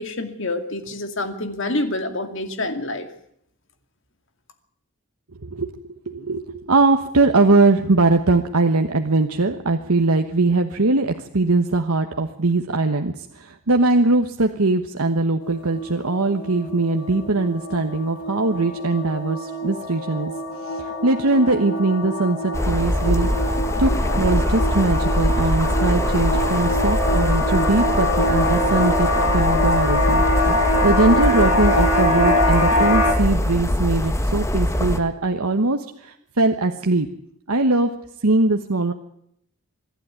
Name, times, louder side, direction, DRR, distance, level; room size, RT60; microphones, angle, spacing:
voice 1, 0.0-3.1, left 2 dB, 60° left, 8 dB, 2.4 m, -27 dB
voice 2, 5.4-20.3 20.6-30.2 30.8-37.1 37.5-37.9 38.2-38.9, right 2 dB, 80° right, 5 dB, 1.3 m, -21 dB
sound 1, 15.4-33.1, left 1 dB, 90° left, 5.0 m, -24 dB
sound 2, 22.5-35.0, left 1 dB, 15° left, 1.4 m, -23 dB
26.0 x 12.0 x 9.6 m, 0.73 s
head